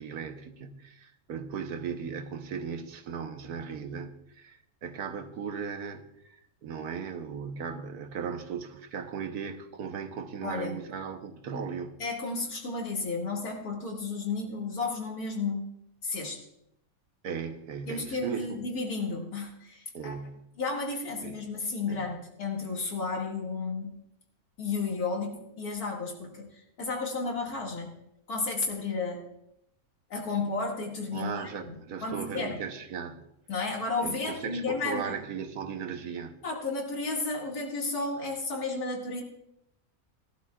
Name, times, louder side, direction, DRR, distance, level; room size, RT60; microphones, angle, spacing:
voice 1, 0.0-12.0 17.2-18.6 19.9-20.4 21.2-21.4 21.9-22.0 31.1-33.2 34.0-36.4, right 6 dB, 85° right, 7 dB, 1.5 m, -37 dB
voice 2, 10.4-10.8 12.0-15.7 16.0-16.4 17.9-20.1 20.6-23.9 24.6-27.9 28.3-29.3 30.1-31.7 32.0-32.6 33.5-35.2 36.4-39.2, left 3 dB, 80° left, -1 dB, 2.7 m, -33 dB
18.5 x 11.5 x 2.4 m, 0.79 s
omnidirectional pair, 1.6 m